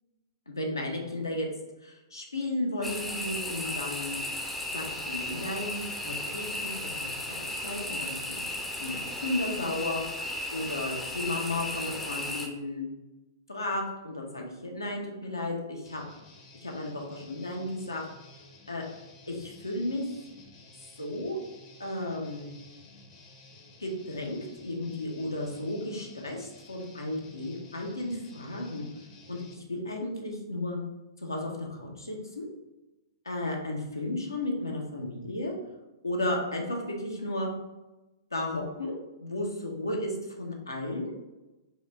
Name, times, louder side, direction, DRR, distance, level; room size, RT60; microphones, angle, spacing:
voice 1, 0.5-1.5 1.8-4.2 4.7-8.4 8.8-12.9 13.5-16.0 16.6-18.0 18.7-18.8 19.3-20.2 21.0-21.4 21.8-22.5 23.8-28.9 29.3-30.8 31.2-32.5 33.2-35.5 36.0-37.5 38.3-41.1, left 1 dB, 80° left, 0 dB, 1.0 m, -34 dB
sound 1, 2.8-12.5, left 1 dB, 5° left, 0.6 m, -35 dB
Guitar, 15.8-29.5, left 3 dB, 35° left, 0.8 m, -54 dB
4.9 x 2.5 x 4.2 m, 1.0 s
figure-of-eight pair, 110°, 2 cm